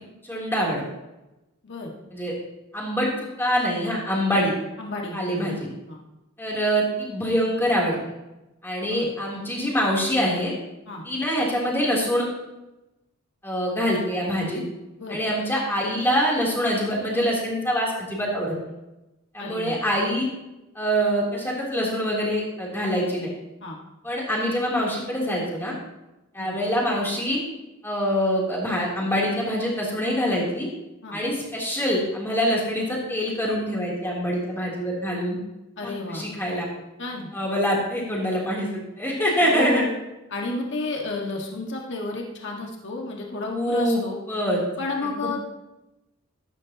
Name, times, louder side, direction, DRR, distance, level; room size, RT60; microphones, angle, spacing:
voice 1, 0.2-0.8 2.1-2.3 2.7-4.5 5.1-5.7 6.4-8.0 8.6-10.5 11.0-12.3 13.4-14.6 15.1-18.5 19.3-20.2 20.7-23.3 24.0-25.7 26.3-27.4 27.8-30.7 31.1-35.4 35.8-36.7 37.3-38.7 39.0-39.8 43.5-44.0 44.3-44.6 45.0-45.4, equal, 10° left, -4 dB, 3.2 m, -25 dB
voice 2, 4.8-5.5 5.9-6.0 8.9-9.1 10.9-11.0 15.0-15.2 19.4-19.8 23.6-23.8 26.4-26.5 31.0-31.2 35.8-36.2 37.0-37.3 39.4-39.9 40.3-44.2 44.8-45.4, left 2 dB, 55° left, -1 dB, 1.8 m, -31 dB
13.5 x 13.5 x 2.9 m, 0.99 s
head